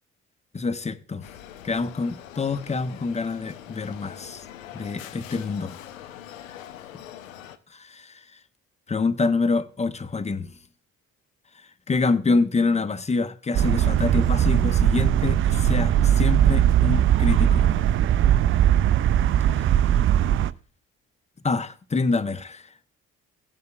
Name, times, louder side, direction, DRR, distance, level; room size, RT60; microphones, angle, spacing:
voice 1, 0.5-1.2 1.6-4.4 4.7-5.8 7.7-8.1 8.9-10.5 11.9-17.7 19.5-19.7 21.4-22.7, left 4 dB, 15° left, 0.8 m, -26 dB
sound 1, 1.2-7.6, left 11 dB, 75° left, 0.7 m, -43 dB
sound 2, 13.5-20.5, right 10 dB, 35° right, 0.4 m, -20 dB
16.0 x 9.4 x 2.3 m
figure-of-eight pair, 45°, 40 cm